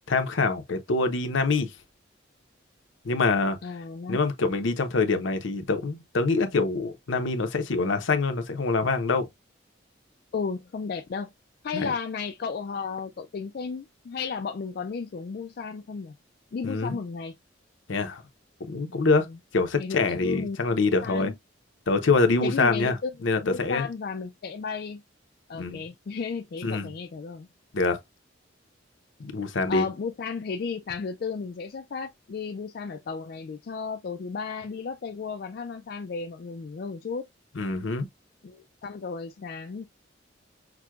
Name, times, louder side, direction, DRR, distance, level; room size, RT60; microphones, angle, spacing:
voice 1, 0.1-1.7 3.0-3.6 4.1-9.3 11.7-11.9 16.6-17.0 17.9-18.2 18.6-19.3 19.5-21.3 21.9-23.0 23.2-23.9 25.6-25.8 26.6-26.9 27.7-28.0 29.2-29.9 37.6-38.1, left 3 dB, 75° left, 0.7 m, -25 dB
voice 2, 3.6-4.2 10.3-11.3 11.6-16.2 16.5-17.4 19.3-19.4 19.8-20.8 21.0-21.3 22.4-23.1 23.4-25.0 25.5-27.5 29.7-37.2 38.4-39.8, left 5 dB, 50° left, 0.3 m, -34 dB
6.0 x 2.2 x 2.3 m
head